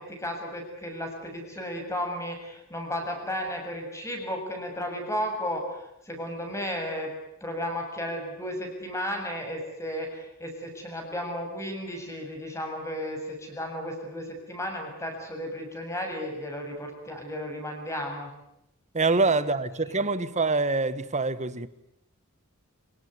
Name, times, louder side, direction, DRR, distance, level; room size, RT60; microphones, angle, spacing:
voice 1, 0.0-7.1 7.4-18.3 19.1-19.6 19.8-20.1, equal, 15° left, 7.1 m, -34 dB
voice 2, 18.9-21.7, right 3 dB, 35° right, 1.4 m, -25 dB
27.0 x 18.0 x 9.7 m
head